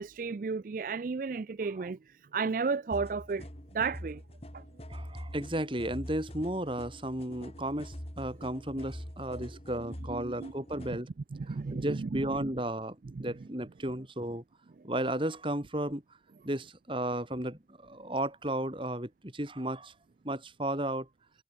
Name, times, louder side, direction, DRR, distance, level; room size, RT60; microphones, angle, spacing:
voice 1, 0.0-3.5 3.7-4.2 4.5-4.6 9.3-9.4 9.9-10.5 10.9-11.0 11.3-12.5 13.2-13.3, right 4 dB, 50° right, 0.4 m, -34 dB
sound 1, 2.9-11.0, equal, 35° left, 5.7 m, -44 dB
voice 2, 4.9-11.1 11.5-14.4 14.8-16.0 16.4-19.9 20.2-21.1, right 1 dB, 30° right, 3.9 m, -34 dB
head